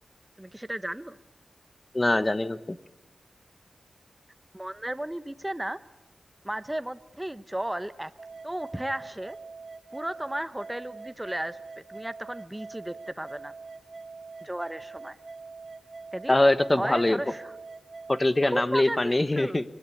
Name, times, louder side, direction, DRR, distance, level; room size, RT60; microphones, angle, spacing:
voice 1, 0.4-1.2 4.5-5.8 6.4-8.1 8.4-9.4 9.9-13.5 14.4-15.2 16.1-16.4 16.7-17.5 18.4-19.6, right 1 dB, 15° right, 13 dB, 1.1 m, -34 dB
voice 2, 1.9-2.8 16.3-17.2 18.1-19.6, left 1 dB, 25° left, 13 dB, 1.1 m, -23 dB
sound 1, 8.2-18.2, right 4 dB, 50° right, 1.7 m, -44 dB
25.0 x 19.5 x 8.6 m, 1.0 s
cardioid pair, 60°, 0 cm